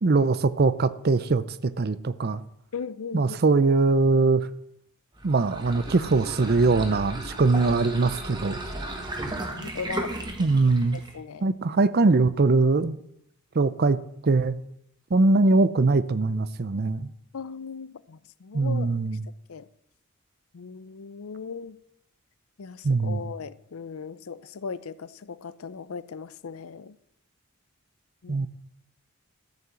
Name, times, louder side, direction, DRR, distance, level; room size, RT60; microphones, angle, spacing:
voice 1, 0.0-2.4 3.1-4.5 5.2-8.6 10.4-11.0 11.4-13.0 13.5-14.0 14.2-14.6 15.1-17.1 18.5-19.2 22.8-23.2 28.3-28.5, right 3 dB, 45° right, 0.5 m, -22 dB
voice 2, 2.7-3.4 9.5-10.1 10.9-11.5 17.3-19.2 19.5-19.7 20.5-21.8 22.6-27.0 28.2-28.5, left 5 dB, 70° left, 0.5 m, -38 dB
sound 1, 5.1-11.2, right 1 dB, 20° right, 1.4 m, -35 dB
13.5 x 5.7 x 7.6 m
head